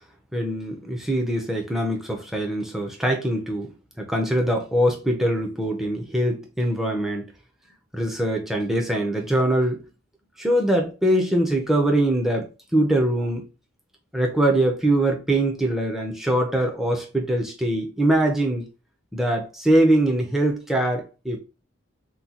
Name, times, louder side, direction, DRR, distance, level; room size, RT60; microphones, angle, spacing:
voice 1, 0.3-3.7 4.0-7.3 7.9-9.8 10.4-13.4 14.1-18.7 19.1-21.4, right 1 dB, ahead, 0.5 m, -23 dB
3.7 x 2.2 x 2.8 m
head